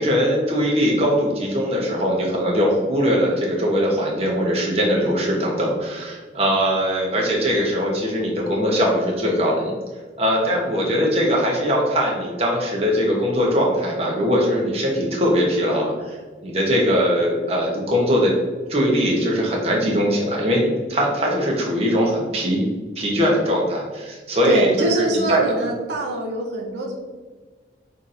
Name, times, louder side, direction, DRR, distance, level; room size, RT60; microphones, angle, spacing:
voice 1, 0.0-9.8 10.2-18.3 18.7-22.6 23.0-25.7, equal, 35° right, -2 dB, 0.9 m, -21 dB
voice 2, 24.4-26.9, right 2 dB, 75° right, 0 dB, 0.6 m, -24 dB
5.9 x 2.8 x 2.5 m, 1.4 s
head